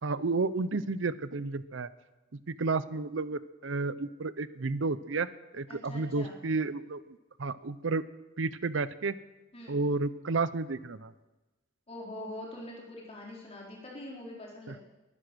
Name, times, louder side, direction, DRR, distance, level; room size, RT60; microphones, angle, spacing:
voice 1, 0.0-1.9 2.5-5.3 5.5-7.0 7.4-8.0 8.4-9.2 9.7-11.1 14.7-14.8, right 3 dB, 90° right, 15 dB, 0.7 m, -31 dB
voice 2, 5.7-6.4 9.5-9.8 11.9-14.8, left 1 dB, 35° left, -3 dB, 4.6 m, -43 dB
22.0 x 10.0 x 6.3 m, 1.1 s
head